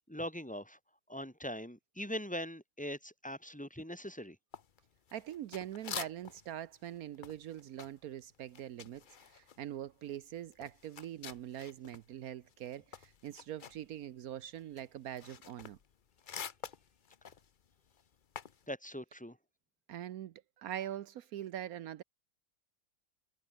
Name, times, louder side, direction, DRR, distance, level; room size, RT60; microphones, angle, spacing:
voice 1, 0.1-0.8 1.1-4.4 18.7-19.4, equal, 5° left, 2.4 m, -41 dB
sound 1, 4.5-6.5 6.8-12.1 12.4-18.6, left 7 dB, 40° left, 0.8 m, -48 dB
voice 2, 5.1-15.8 19.9-22.0, right 11 dB, 75° right, 1.2 m, -43 dB
omnidirectional pair, 1.6 m